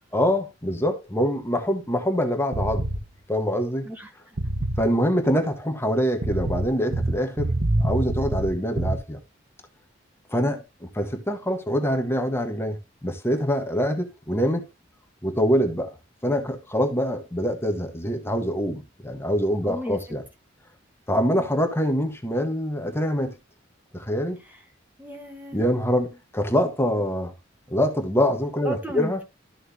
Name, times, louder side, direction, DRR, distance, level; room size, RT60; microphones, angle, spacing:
voice 1, 0.1-2.9 3.3-3.9 4.8-7.5 7.8-9.2 10.3-14.7 15.2-15.9 16.2-20.2 21.1-23.4 23.9-24.4 25.5-27.3 27.7-29.2, equal, 10° left, 1.5 m, -25 dB
sound 1, 2.5-3.0 4.4-4.9 6.2-9.0, right 1 dB, 70° right, 1.2 m, -25 dB
voice 2, 3.8-4.4 19.6-20.0 24.4-24.6 25.0-25.6 28.6-29.2, right 1 dB, 10° right, 1.4 m, -34 dB
13.5 x 6.3 x 2.9 m
head